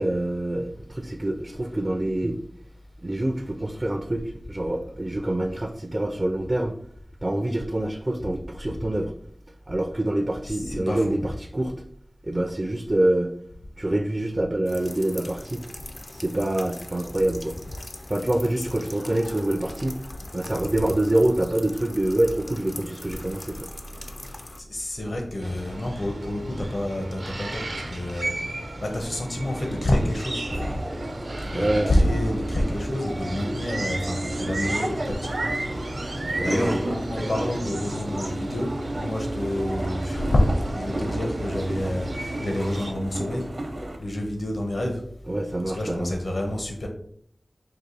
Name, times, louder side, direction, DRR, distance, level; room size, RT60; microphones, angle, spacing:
voice 1, 0.0-2.4 3.0-6.7 7.2-9.1 9.7-11.7 12.2-13.3 13.8-15.6 16.1-17.6 18.1-20.0 20.3-23.6 31.5-31.9 36.2-36.5 45.3-46.2, right 1 dB, 30° right, 4 dB, 0.4 m, -26 dB
voice 2, 10.4-11.3 18.6-18.7 24.6-28.3 28.8-30.7 31.4-35.8 36.3-40.4 40.7-43.5 44.0-45.0 45.6-46.9, left 1 dB, 70° left, 2 dB, 1.0 m, -28 dB
sound 1, 14.7-24.6, left 2 dB, 50° left, 0.5 m, -42 dB
sound 2, 25.4-42.9, right 1 dB, 85° right, 0.9 m, -35 dB
sound 3, 29.4-44.0, right 1 dB, 60° right, 0.7 m, -32 dB
4.8 x 2.6 x 3.9 m, 0.63 s
wide cardioid pair, 55°, 0 cm